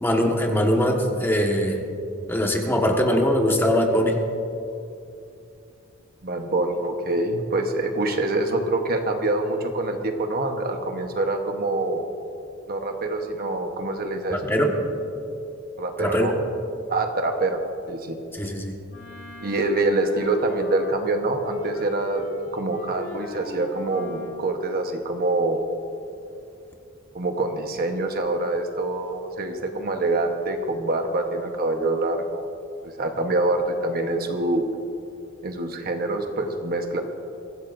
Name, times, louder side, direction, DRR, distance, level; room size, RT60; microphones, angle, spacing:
voice 1, 0.0-1.8 2.3-4.1 14.3-14.7 16.0-16.3 18.4-18.7, equal, 10° left, 0 dB, 1.4 m, -21 dB
voice 2, 6.2-12.1 12.7-14.5 15.8-16.4 16.9-17.6 17.9-18.2 19.4-22.2 22.5-25.6 27.1-32.4 32.8-34.6 35.4-37.0, right 2 dB, 45° right, 4 dB, 1.1 m, -25 dB
Wind instrument woodwind instrument, 18.9-21.1 21.4-24.5, left 2 dB, 60° left, 1.7 m, -38 dB
23.0 x 16.0 x 2.6 m, 2.7 s
head